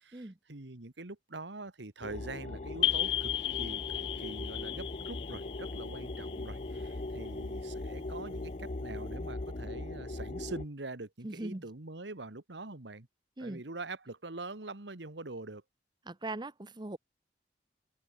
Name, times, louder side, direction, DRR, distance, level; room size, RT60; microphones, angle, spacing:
voice 1, 0.0-3.3 3.6-13.1 13.4-15.6, right 2 dB, 85° right, 1.8 m, -44 dB
sound 1, 2.0-10.6, left 2 dB, 40° left, 0.9 m, -40 dB
sound 2, 2.8-7.3, left 14 dB, 85° left, 0.5 m, -34 dB
voice 2, 11.2-11.7 13.4-13.6 16.1-17.0, right 2 dB, 25° right, 1.0 m, -40 dB
head